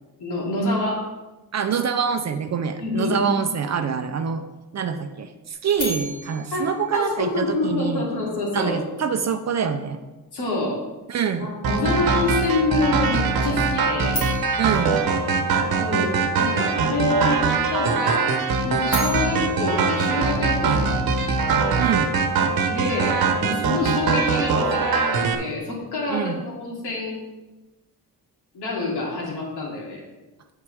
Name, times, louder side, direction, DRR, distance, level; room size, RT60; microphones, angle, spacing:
voice 1, 0.2-1.1 2.8-3.2 6.5-8.8 10.3-10.8 11.4-14.2 15.8-18.4 18.6-21.0 22.7-27.2 28.5-30.0, left 2 dB, 85° left, -4 dB, 3.1 m, -26 dB
voice 2, 1.5-4.4 4.7-8.0 8.5-10.0 11.1-11.5 14.6-15.0 21.8-22.1 26.1-26.4, right 6 dB, 45° right, 8 dB, 0.6 m, -25 dB
sound 1, 5.8-7.9 14.1-16.3 18.6-21.0, left 1 dB, 60° left, 3.1 m, -36 dB
sound 2, 11.6-25.4, right 4 dB, 70° right, 1.1 m, -22 dB
8.3 x 8.1 x 3.5 m, 1.1 s
cardioid pair, 135°, 38 cm